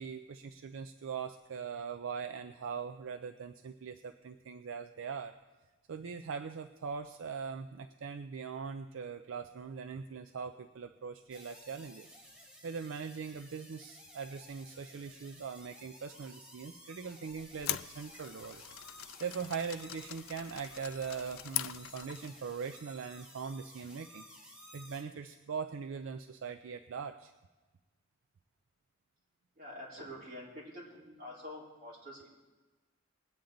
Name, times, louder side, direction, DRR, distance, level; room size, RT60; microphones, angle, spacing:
voice 1, 0.0-5.4 5.9-27.3, right 6 dB, 70° right, 8 dB, 0.4 m, -41 dB
sound 1, 11.3-25.0, equal, 5° right, 1.4 m, -55 dB
sound 2, 17.3-22.4, left 13 dB, 80° left, 0.4 m, -42 dB
voice 2, 29.6-32.4, left 1 dB, 45° right, -6 dB, 3.8 m, -47 dB
20.5 x 8.6 x 3.9 m, 1.2 s
head